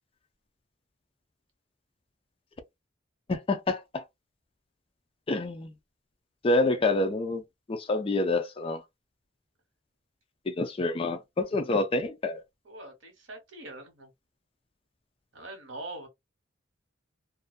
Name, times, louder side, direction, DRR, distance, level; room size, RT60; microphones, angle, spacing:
voice 1, 3.3-4.0 5.3-5.7 6.4-7.4 7.7-8.8 10.5-12.4, left 2 dB, 30° left, 0.4 m, -27 dB
voice 2, 12.6-14.1 15.3-16.1, right 2 dB, 70° right, 1.1 m, -43 dB
2.5 x 2.2 x 2.3 m
head